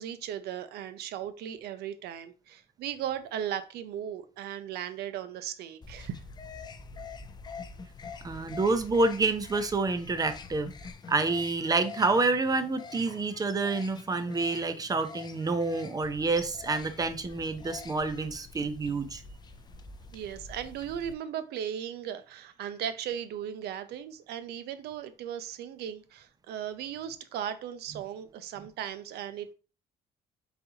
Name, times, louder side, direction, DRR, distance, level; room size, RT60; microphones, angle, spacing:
voice 1, 0.0-6.2 20.1-29.5, right 9 dB, 75° right, 0.5 m, -37 dB
sound 1, 5.8-21.1, left 4 dB, 25° left, 0.5 m, -46 dB
voice 2, 8.2-10.7 11.1-19.2, right 3 dB, 20° right, 0.6 m, -28 dB
4.1 x 4.0 x 2.8 m
cardioid pair, 110°, 17 cm